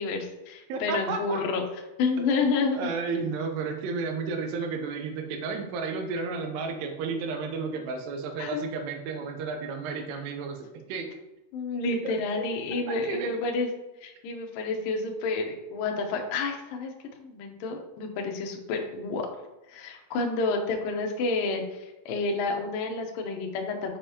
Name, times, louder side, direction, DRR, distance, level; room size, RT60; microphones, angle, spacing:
voice 1, 0.0-1.6 2.0-2.9 8.4-8.6 11.5-13.7 14.0-16.9 17.2-19.3 19.7-24.0, left 3 dB, 75° left, 2 dB, 2.2 m, -29 dB
voice 2, 0.7-1.4 2.2-2.5 2.7-11.1 11.9-12.1 12.9-13.3, right 4 dB, 90° right, 4 dB, 2.9 m, -32 dB
7.0 x 5.2 x 2.9 m, 1.0 s
omnidirectional pair, 4.7 m